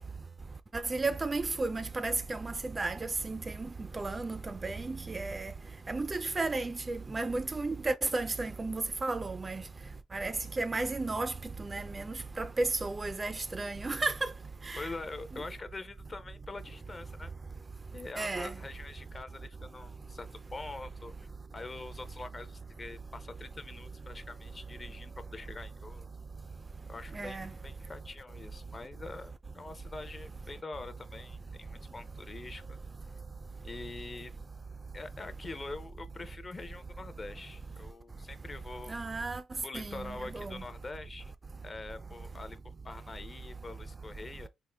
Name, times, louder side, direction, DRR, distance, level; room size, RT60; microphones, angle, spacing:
voice 1, 0.7-3.4 3.9-5.5 5.9-9.6 10.1-11.3 11.6-14.3 14.7-14.9 18.2-18.5 27.1-27.5 38.9-39.4 39.7-40.1 40.3-40.6, right 3 dB, 25° right, 0.3 m, -33 dB
voice 2, 14.7-17.3 17.9-21.3 21.5-26.1 26.9-32.6 33.6-34.3 34.9-39.0 39.6-41.3 41.6-44.5, left 3 dB, 30° left, 0.5 m, -44 dB
3.5 x 2.4 x 3.3 m
cardioid pair, 90°, 0 cm